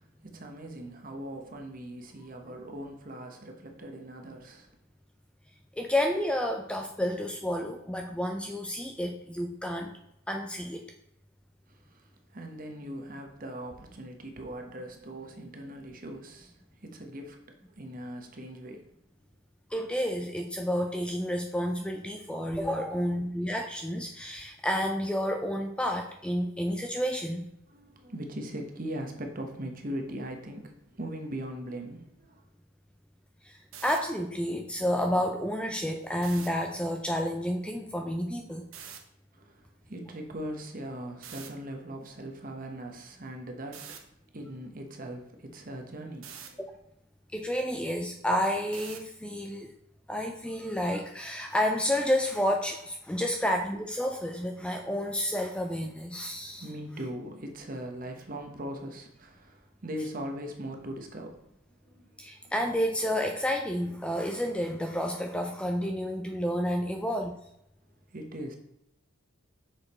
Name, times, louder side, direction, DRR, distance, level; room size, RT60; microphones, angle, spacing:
voice 1, 0.0-4.7 11.7-18.9 27.7-32.4 39.3-44.0 44.3-46.6 56.5-61.5 61.8-62.5 68.1-68.6, right 1 dB, 40° right, 1.0 m, -40 dB
voice 2, 5.8-9.9 10.3-10.8 19.7-27.5 33.4-38.7 47.3-49.7 50.1-56.7 62.2-67.3, equal, 5° left, 0.4 m, -30 dB
sound 1, 33.6-34.0 36.2-36.5 38.7-39.0 41.2-41.5 43.7-44.0 46.2-46.5 48.7-49.1, right 8 dB, 75° right, 0.9 m, -44 dB
6.3 x 4.9 x 4.2 m
head